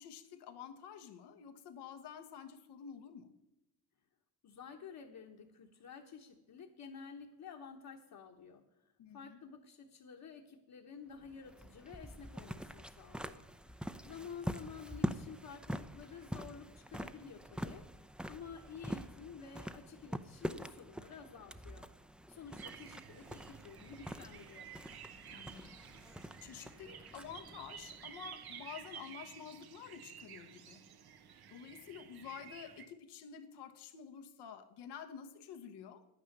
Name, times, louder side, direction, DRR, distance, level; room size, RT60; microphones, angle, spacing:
voice 1, 0.0-3.4 9.0-9.4 25.3-30.8 31.5-36.1, left 7 dB, 85° left, 1.2 m, -50 dB
voice 2, 4.4-8.6 9.1-13.4 14.0-17.9 18.3-21.9 22.3-24.7, left 6 dB, 60° left, 1.3 m, -51 dB
sound 1, 11.1-28.8, equal, ahead, 0.6 m, -45 dB
sound 2, 22.6-32.9, right 8 dB, 70° right, 1.1 m, -53 dB
10.0 x 9.6 x 6.7 m
cardioid pair, 75°, 39 cm